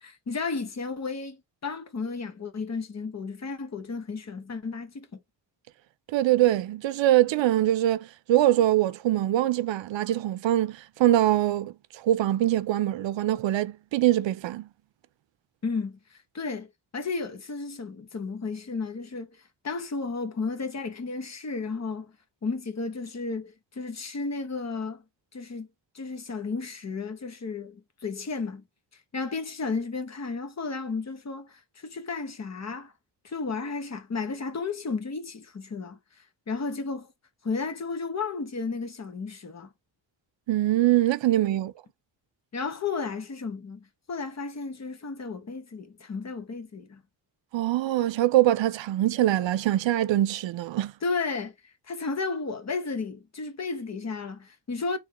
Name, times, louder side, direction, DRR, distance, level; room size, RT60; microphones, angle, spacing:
voice 1, 0.0-5.2 15.6-16.7 16.9-19.3 19.6-22.1 22.4-25.0 25.3-25.7 25.9-28.6 29.1-32.9 33.2-36.0 36.5-37.1 37.4-39.7 42.5-47.0 51.0-51.5 51.9-55.0, left 4 dB, 40° left, 0.9 m, -33 dB
voice 2, 6.1-14.7 40.5-41.7 47.5-50.9, right 14 dB, 85° right, 0.5 m, -23 dB
3.6 x 3.4 x 2.9 m
wide cardioid pair, 120°, 43 cm